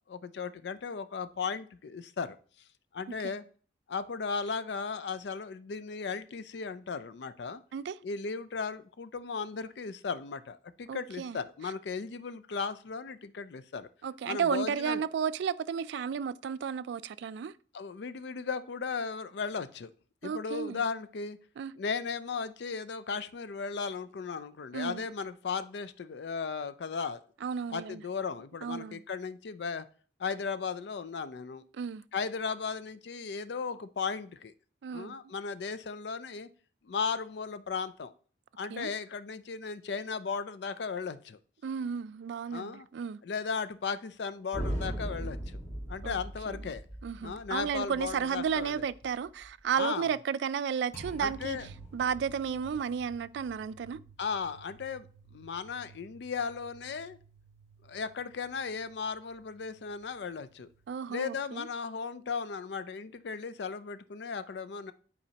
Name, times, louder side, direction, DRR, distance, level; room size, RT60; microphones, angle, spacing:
voice 1, 0.1-2.4 2.9-3.4 3.9-7.6 8.0-13.9 14.3-15.0 17.7-19.9 20.2-21.4 21.7-27.2 27.7-29.9 30.2-31.6 32.1-34.5 34.9-36.5 36.8-38.1 38.6-41.4 42.5-42.9 43.2-45.6 45.9-46.8 47.2-48.8 49.8-50.1 51.2-51.7 54.2-55.1 55.3-57.2 57.8-60.7 61.1-64.9, left 5 dB, 65° left, 0.4 m, -36 dB
voice 2, 10.9-11.4 14.0-17.5 20.2-20.8 21.6-21.7 24.7-25.0 27.4-28.0 28.6-29.0 31.7-32.0 34.8-35.1 38.7-38.9 41.6-43.2 46.0-46.2 46.5-46.6 47.0-51.6 51.9-54.0 60.9-61.7, right 7 dB, 70° right, 0.3 m, -33 dB
sound 1, 44.5-49.6 50.9-60.9, right 1 dB, 15° left, 1.5 m, -44 dB
9.7 x 4.2 x 2.8 m
head